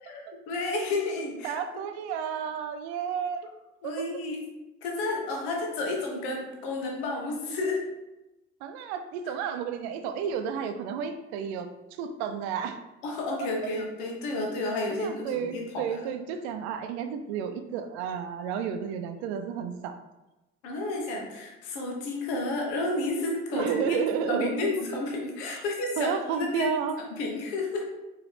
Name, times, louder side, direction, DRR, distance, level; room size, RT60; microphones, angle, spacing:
voice 1, 0.0-1.6 3.8-4.5 4.8-7.9 13.0-16.0 20.6-24.0 24.3-26.7 27.1-27.9, left 2 dB, 85° left, 0 dB, 1.0 m, -31 dB
voice 2, 1.4-3.5 3.8-3.9 8.6-12.8 14.9-19.9 23.5-24.7 26.0-26.9, right 7 dB, 90° right, 8 dB, 0.5 m, -31 dB
4.8 x 3.1 x 3.2 m, 1.0 s
hypercardioid pair, 60°, 32 cm